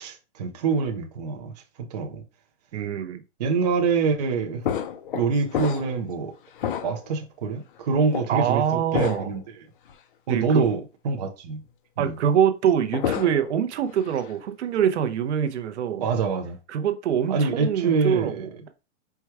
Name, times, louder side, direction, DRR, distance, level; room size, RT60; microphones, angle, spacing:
voice 1, 0.0-1.5 1.9-2.2 3.4-4.6 5.1-6.3 6.8-9.4 10.3-11.6 12.0-12.1 16.0-16.6 17.3-18.5, right 5 dB, 35° right, 0.6 m, -25 dB
voice 2, 2.7-3.2 8.3-9.3 10.3-10.7 12.0-16.0 16.7-18.5, right 8 dB, 70° right, 0.7 m, -24 dB
sound 1, 4.6-6.1 6.5-7.2 8.1-8.3 8.9-9.4 9.9-10.0 12.7-13.6 13.9-14.3, left 8 dB, 50° left, 0.5 m, -30 dB
4.5 x 2.3 x 4.6 m
supercardioid pair, 175°, 35 cm